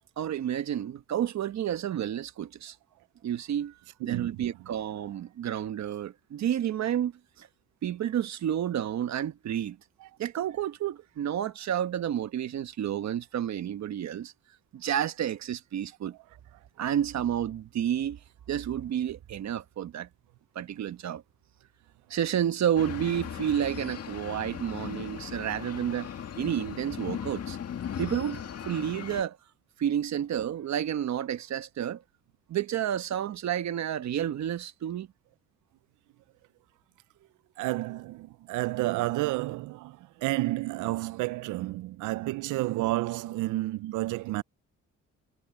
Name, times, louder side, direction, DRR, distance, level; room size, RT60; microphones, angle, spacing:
voice 1, 0.2-2.7 3.2-3.7 4.0-7.1 7.4-7.5 7.8-9.8 10.2-14.3 14.7-16.2 16.8-18.2 18.5-20.1 20.5-21.2 22.1-26.1 26.4-27.6 28.0-29.4 29.8-32.0 32.5-35.1, right 10 dB, 65° right, 1.3 m, -30 dB
voice 2, 4.0-4.5 37.6-44.4, right 18 dB, 85° right, 0.5 m, -31 dB
sound 1, 22.8-29.2, left 8 dB, 55° left, 2.0 m, -38 dB
cardioid pair, 90°, 30 cm